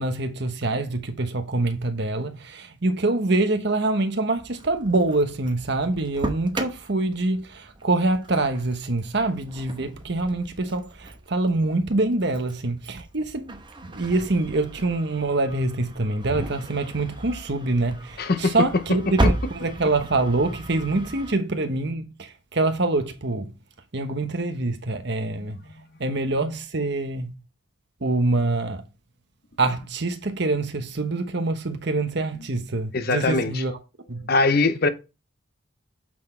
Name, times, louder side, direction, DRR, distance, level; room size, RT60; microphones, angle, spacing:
voice 1, 0.0-23.5 23.9-25.6 26.0-27.3 28.0-28.8 29.6-33.7 34.1-34.3, right 2 dB, 55° right, 1.1 m, -25 dB
Engine starting, 4.4-21.3, right 1 dB, 20° right, 0.9 m, -34 dB
voice 2, 18.2-18.7 19.2-19.3 32.9-33.6 34.3-34.9, left 3 dB, 50° left, 0.7 m, -21 dB
8.3 x 4.2 x 4.3 m
head